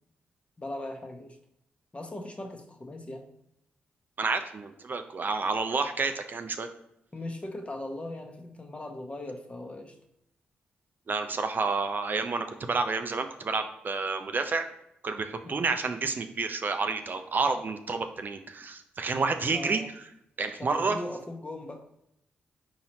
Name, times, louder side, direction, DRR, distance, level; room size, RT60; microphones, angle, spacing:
voice 1, 0.6-1.4 1.9-3.3 7.1-10.0 15.4-15.7 19.5-19.9 20.6-21.8, left 1 dB, 25° left, 4 dB, 0.8 m, -39 dB
voice 2, 4.2-6.7 11.1-14.7 15.0-19.8 20.4-21.0, right 4 dB, 45° right, 7 dB, 0.4 m, -29 dB
4.1 x 2.8 x 4.3 m, 0.77 s
hypercardioid pair, 40°, 4 cm